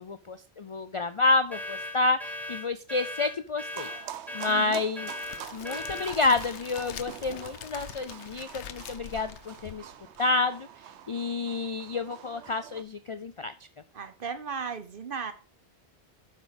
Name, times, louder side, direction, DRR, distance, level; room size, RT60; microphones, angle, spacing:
voice 1, 0.0-3.9 4.3-5.1 5.5-9.9 10.2-10.7 11.1-13.5, left 3 dB, 50° left, 12 dB, 0.4 m, -29 dB
sound 1, 1.5-6.2, left 1 dB, ahead, 1.0 m, -38 dB
sound 2, 3.7-12.8, right 11 dB, 80° right, 0.9 m, -45 dB
voice 2, 4.5-4.8 13.9-15.3, right 6 dB, 55° right, 10 dB, 1.0 m, -36 dB
Crackle, 5.1-10.2, left 10 dB, 90° left, 1.0 m, -44 dB
8.1 x 6.2 x 5.1 m, 0.36 s
omnidirectional pair, 1.1 m